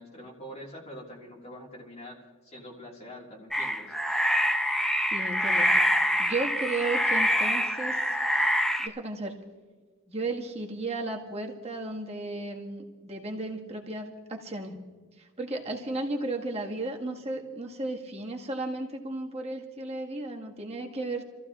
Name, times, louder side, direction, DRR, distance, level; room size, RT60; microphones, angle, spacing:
voice 1, 0.0-4.0, equal, 30° left, -2 dB, 1.9 m, -45 dB
sound 1, 3.5-8.9, equal, ahead, 0.7 m, -25 dB
voice 2, 5.1-5.7 6.2-8.2 8.8-9.4 10.1-14.8 15.2-21.2, right 2 dB, 30° right, 0 dB, 1.7 m, -34 dB
30.0 x 14.5 x 2.4 m, 1.4 s
head